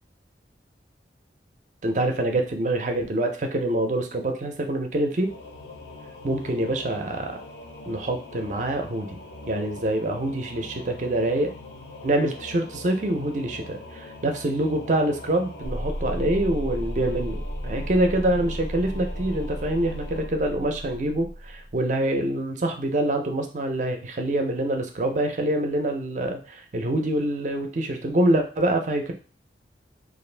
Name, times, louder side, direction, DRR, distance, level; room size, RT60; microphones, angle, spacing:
voice 1, 1.8-5.3 6.2-7.4 7.9-9.2 9.5-11.5 12.0-29.1, right 1 dB, 45° right, 4 dB, 0.5 m, -25 dB
Singing / Musical instrument, 5.2-20.3, left 1 dB, 75° left, 0.6 m, -42 dB
sound 1, 15.6-21.8, equal, 15° left, 0.4 m, -33 dB
2.5 x 2.4 x 3.2 m, 0.37 s
head